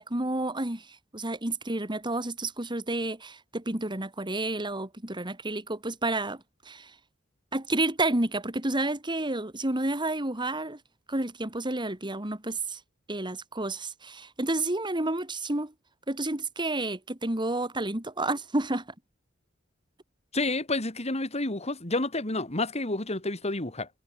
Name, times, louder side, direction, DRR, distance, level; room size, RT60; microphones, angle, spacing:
voice 1, 0.0-6.9 7.5-10.8 11.1-12.8 13.1-15.7 16.1-18.9, right 2 dB, 25° right, 2.7 m, -30 dB
voice 2, 20.3-23.9, left 2 dB, 30° left, 3.5 m, -29 dB
head